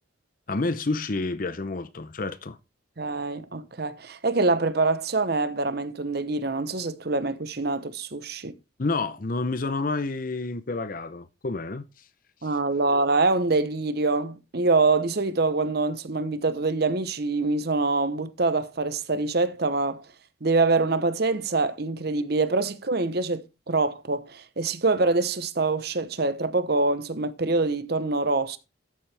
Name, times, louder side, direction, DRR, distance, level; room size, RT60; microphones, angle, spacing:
voice 1, 0.5-2.6 8.8-11.8, left 3 dB, 45° left, 0.7 m, -29 dB
voice 2, 3.0-8.5 12.4-20.0 20.4-28.6, right 3 dB, 50° right, 0.9 m, -25 dB
13.0 x 7.3 x 3.4 m
head